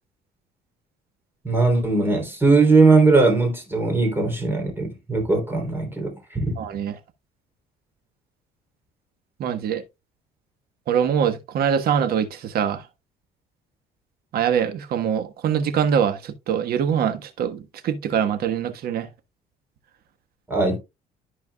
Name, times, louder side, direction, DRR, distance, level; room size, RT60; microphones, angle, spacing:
voice 1, 1.4-6.6 20.5-20.8, right 3 dB, 15° right, 3.3 m, -19 dB
voice 2, 6.6-6.9 9.4-9.8 10.9-12.8 14.3-19.1, right 8 dB, 65° right, 1.4 m, -23 dB
13.5 x 4.6 x 2.3 m
cardioid pair, 110°, 17 cm